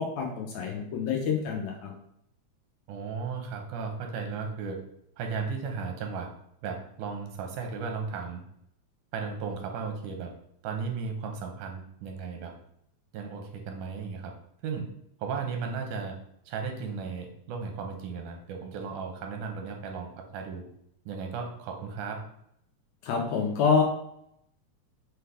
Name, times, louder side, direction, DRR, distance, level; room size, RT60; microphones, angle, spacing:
voice 1, 0.0-1.9 23.0-23.8, left 5 dB, 75° left, 1 dB, 1.6 m, -27 dB
voice 2, 2.9-4.8 5.2-6.3 6.6-8.4 9.1-10.3 10.6-12.5 13.1-14.3 14.6-14.9 15.2-16.2 16.5-20.6 21.1-22.2, right 5 dB, 90° right, 3 dB, 2.2 m, -35 dB
5.7 x 2.3 x 3.3 m, 0.74 s
omnidirectional pair, 3.5 m